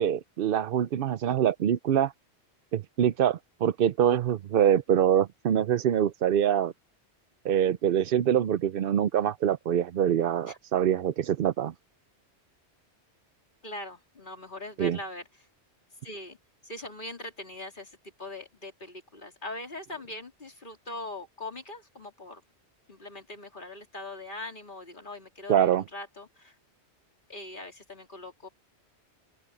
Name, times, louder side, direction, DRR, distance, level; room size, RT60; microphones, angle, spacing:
voice 1, 0.0-2.1 2.7-6.7 7.4-11.7 14.8-15.0 25.5-25.8, right 9 dB, 60° right, 0.7 m, -24 dB
voice 2, 13.6-15.2 16.0-16.4 16.6-22.4 22.9-26.6 27.3-28.5, left 2 dB, 50° left, 3.2 m, -41 dB
open air
omnidirectional pair, 1.1 m